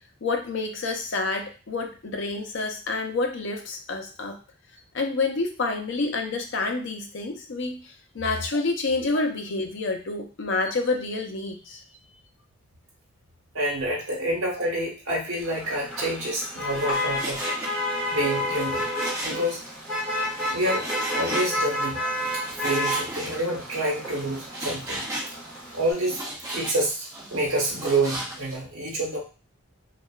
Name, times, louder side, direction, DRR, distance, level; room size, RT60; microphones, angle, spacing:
voice 1, 0.2-4.4 4.9-11.8, left 3 dB, 60° left, 4 dB, 0.5 m, -28 dB
voice 2, 13.5-17.4 18.1-18.9 19.2-19.6 20.5-20.9 21.1-22.0 22.3-25.0 25.7-26.2 26.5-29.2, right 1 dB, 85° right, -3 dB, 0.9 m, -27 dB
Motor vehicle (road), 15.4-25.9, left 1 dB, 5° left, 1.3 m, -30 dB
Frying (food), 16.7-28.6, right 1 dB, 15° right, 0.5 m, -37 dB
2.8 x 2.3 x 2.3 m, 0.34 s
head